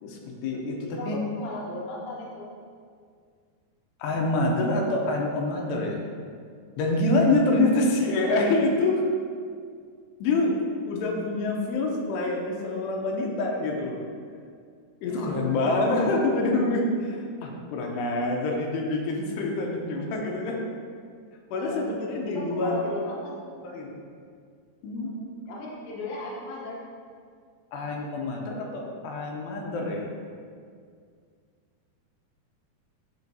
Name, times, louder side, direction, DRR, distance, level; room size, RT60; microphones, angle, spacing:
voice 1, 0.0-0.8 1.1-1.2 4.0-6.0 6.8-9.0 10.2-10.5 10.9-14.0 15.0-20.6 21.5-22.8 23.6-24.0 24.8-25.1 27.7-30.1, left 2 dB, 85° left, 0 dB, 2.9 m, -26 dB
voice 2, 0.8-2.5 15.0-16.2 21.6-23.4 25.0-26.8, left 2 dB, 65° left, -4 dB, 1.9 m, -37 dB
9.8 x 5.0 x 2.8 m, 2.1 s
omnidirectional pair, 4.7 m